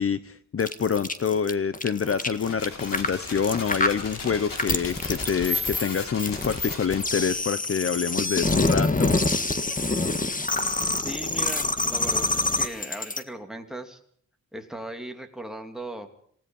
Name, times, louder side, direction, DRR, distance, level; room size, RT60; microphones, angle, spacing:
voice 1, 0.0-9.1, left 6 dB, 45° left, 14 dB, 0.8 m, -26 dB
sound 1, 0.6-13.2, left 2 dB, 25° left, 1.7 m, -26 dB
sound 2, 2.3-7.3, left 4 dB, 85° left, 6.0 m, -39 dB
voice 2, 11.0-14.0 14.5-16.1, right 1 dB, ahead, 3 dB, 2.8 m, -37 dB
27.5 x 17.5 x 5.5 m, 0.62 s
wide cardioid pair, 125°, 32 cm